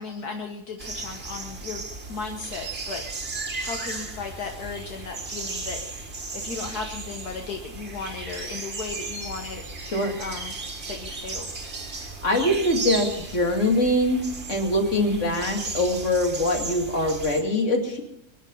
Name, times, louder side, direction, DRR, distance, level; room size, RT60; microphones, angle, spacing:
voice 1, 0.0-3.0 3.6-9.7 10.2-10.6 10.9-11.5 15.0-15.4, left 4 dB, 75° left, 3 dB, 1.8 m, -36 dB
sound 1, 0.8-17.4, right 3 dB, 40° right, 2.0 m, -35 dB
voice 2, 12.0-14.2 14.5-18.0, left 1 dB, 50° left, 3 dB, 2.8 m, -23 dB
24.0 x 10.0 x 5.5 m, 0.75 s
omnidirectional pair, 1.7 m